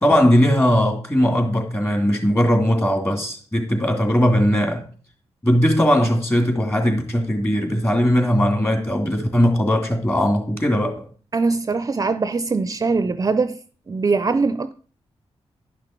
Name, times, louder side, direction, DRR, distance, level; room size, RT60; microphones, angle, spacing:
voice 1, 0.0-4.8 5.4-11.1, equal, 20° left, 2.6 m, -19 dB
voice 2, 11.3-13.6 13.9-14.7, right 4 dB, 35° right, 0.4 m, -21 dB
11.0 x 5.9 x 4.5 m
cardioid pair, 85°, 11 cm